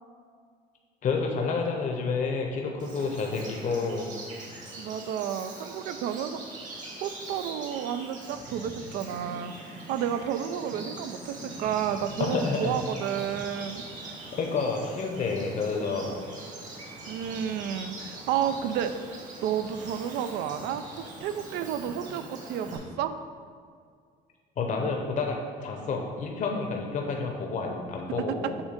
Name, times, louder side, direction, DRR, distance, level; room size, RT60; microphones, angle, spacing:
voice 1, 1.0-4.1 12.2-12.7 14.3-16.1 24.6-28.6, left 4 dB, 50° left, 1 dB, 0.7 m, -29 dB
Bird vocalization bird call bird song, 2.8-22.8, right 2 dB, 45° right, 1.5 m, -42 dB
voice 2, 4.8-6.4 7.0-13.8 17.1-23.2, right 9 dB, 85° right, 10 dB, 0.4 m, -31 dB
7.0 x 2.7 x 5.1 m, 2.1 s
cardioid pair, 110°, 17 cm